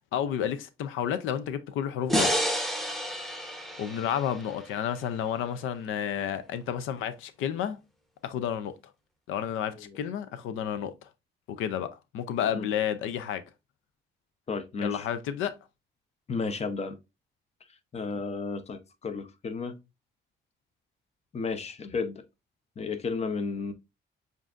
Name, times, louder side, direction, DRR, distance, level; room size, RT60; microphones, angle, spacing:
voice 1, 0.1-2.4 3.8-7.8 8.2-8.9 9.3-11.1 11.5-13.4 14.8-15.5, left 9 dB, 90° left, 0.5 m, -31 dB
sound 1, 2.1-5.3, equal, ahead, 0.9 m, -30 dB
voice 2, 14.5-15.1 16.3-17.0 17.9-19.8 21.3-22.2 22.8-23.7, left 4 dB, 30° left, 0.7 m, -33 dB
7.2 x 2.6 x 2.4 m
cardioid pair, 90°, 20 cm